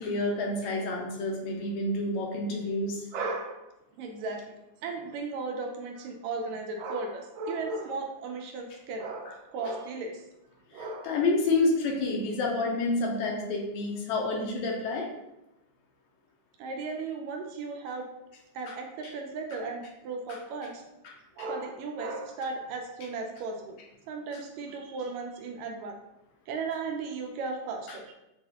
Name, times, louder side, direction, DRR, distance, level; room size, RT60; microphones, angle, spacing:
voice 1, 0.0-3.1 10.7-15.1 19.0-19.1 21.0-21.1 21.4-21.5 27.9-28.0, left 2 dB, 75° left, 0 dB, 1.8 m, -29 dB
voice 2, 3.1-3.7 4.0-4.4 4.8-10.2 10.7-11.2 16.6-18.1 18.6-20.8 21.4-23.8 24.1-26.0 26.5-28.2, right 3 dB, 80° right, 3 dB, 1.6 m, -36 dB
6.6 x 2.3 x 2.8 m, 0.90 s
omnidirectional pair, 3.7 m